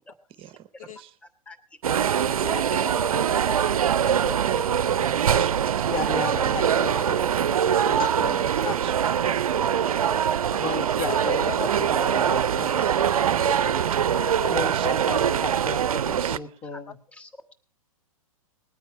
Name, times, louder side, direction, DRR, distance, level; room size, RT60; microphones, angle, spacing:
voice 1, 0.1-0.5 0.7-0.9 1.2-1.8 2.1-2.3 3.5-3.6 4.1-4.7 5.0-5.1 5.6-6.3 6.6-6.7 7.9-8.0 8.5-8.7 9.9-10.3 12.2-12.3 12.8-13.1 13.8-13.9 14.3-14.4 16.7-16.8 17.1-17.5, left 1 dB, 5° left, 10 dB, 1.0 m, -45 dB
sound 1, 1.8-16.4, right 9 dB, 75° right, 0.5 m, -23 dB
voice 2, 2.2-3.7 4.0-4.4 6.8-7.0 8.0-8.1 8.6-8.7 11.1-11.9 13.6-13.8 14.1-14.5 15.4-15.5, left 9 dB, 70° left, 12 dB, 1.0 m, -37 dB
voice 3, 4.5-5.7 8.3-8.9 9.2-9.3 13.2-14.1 14.6-14.9 15.2-16.6, right 14 dB, 30° right, 14 dB, 0.9 m, -40 dB
voice 4, 5.8-8.4 10.6-12.8 14.5-16.9, left 4 dB, 35° left, 9 dB, 1.5 m, -34 dB
20.0 x 9.2 x 4.6 m, 0.39 s
hypercardioid pair, 115°, 18 cm